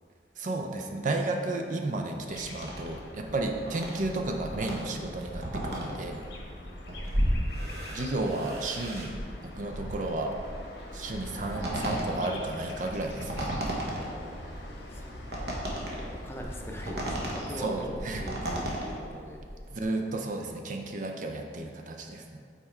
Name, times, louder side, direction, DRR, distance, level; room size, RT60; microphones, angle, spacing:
voice 1, 0.4-6.2 7.9-9.2 9.4-10.3 10.9-13.6 17.6-18.2 19.7-22.4, right 2 dB, 45° right, 3 dB, 0.5 m, -33 dB
sound 1, 2.3-17.9, left 1 dB, 80° left, 1.0 m, -45 dB
sound 2, 2.6-19.8, equal, 65° right, 1.1 m, -35 dB
voice 2, 6.5-7.1 14.0-15.5 15.8-19.4, equal, 15° left, 0 dB, 0.6 m, -42 dB
5.8 x 4.3 x 4.5 m, 2.3 s
head